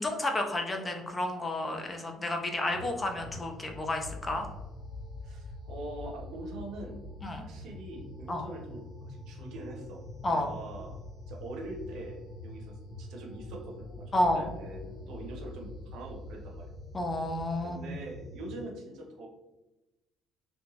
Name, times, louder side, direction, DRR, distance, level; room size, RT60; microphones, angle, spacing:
voice 1, 0.0-4.5 7.2-7.4 8.3-8.4 10.2-10.5 14.1-14.4 16.9-17.9, left 1 dB, 20° left, 3 dB, 0.3 m, -31 dB
sound 1, 2.6-18.6, left 2 dB, 40° right, 1.4 m, -45 dB
voice 2, 5.2-7.0 7.3-10.0 10.3-11.0 11.3-16.7 17.6-19.3, right 2 dB, 70° right, 0 dB, 0.6 m, -43 dB
2.8 x 2.2 x 2.7 m, 1.0 s
cardioid pair, 135°, 0 cm